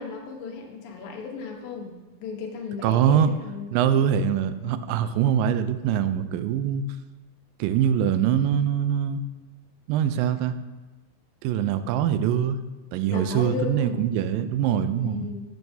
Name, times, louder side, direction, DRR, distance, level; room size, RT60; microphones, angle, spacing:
voice 1, 0.0-1.9 2.2-3.7 13.1-14.0 15.0-15.4, left 6 dB, 85° left, 1 dB, 2.8 m, -34 dB
voice 2, 2.8-3.3 3.7-6.8 7.6-9.2 9.9-10.5 11.4-12.6 12.9-15.3, right 9 dB, 90° right, 11 dB, 2.3 m, -23 dB
12.0 x 7.9 x 2.7 m, 1.1 s
omnidirectional pair, 3.9 m